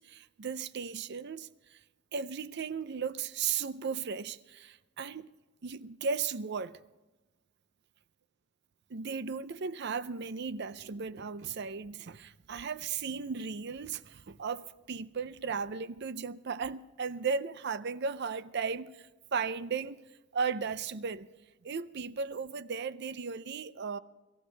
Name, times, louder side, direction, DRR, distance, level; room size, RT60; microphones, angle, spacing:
voice 1, 0.0-1.8 2.1-5.3 5.6-6.8 8.9-20.1 20.3-21.3 21.6-24.0, right 5 dB, 60° right, 0.6 m, -36 dB
24.5 x 14.5 x 3.4 m
head